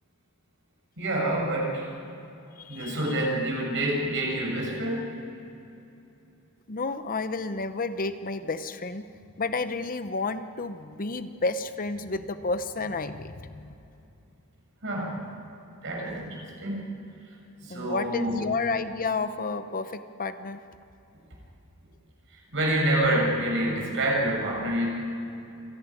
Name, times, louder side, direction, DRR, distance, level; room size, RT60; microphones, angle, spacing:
voice 1, 1.0-1.9 2.7-5.1 14.8-15.2 15.8-16.8 17.6-18.4 22.5-24.9, right 1 dB, 55° right, -2 dB, 6.9 m, -27 dB
voice 2, 2.6-3.1 6.7-9.1 9.4-13.7 17.7-20.6, left 3 dB, 40° left, 10 dB, 0.8 m, -31 dB
27.5 x 11.5 x 9.8 m, 2.8 s
head